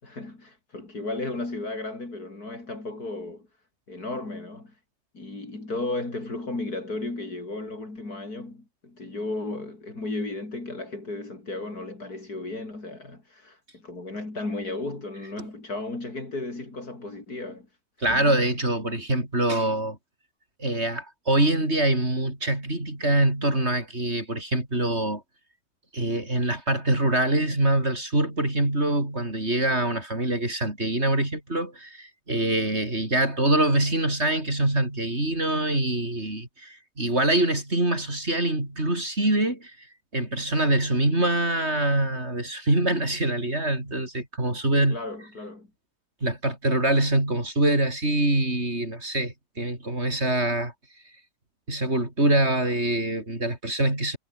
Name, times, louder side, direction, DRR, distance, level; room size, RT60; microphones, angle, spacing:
voice 1, 0.0-3.5 3.9-4.7 5.1-17.7 18.1-18.4 44.9-45.7, left 2 dB, 65° left, 5.9 m, -34 dB
voice 2, 18.0-20.0 20.6-25.2 25.9-39.9 40.1-45.0 46.2-50.7 51.7-54.2, right 1 dB, 40° right, 6.2 m, -24 dB
omnidirectional pair, 1.7 m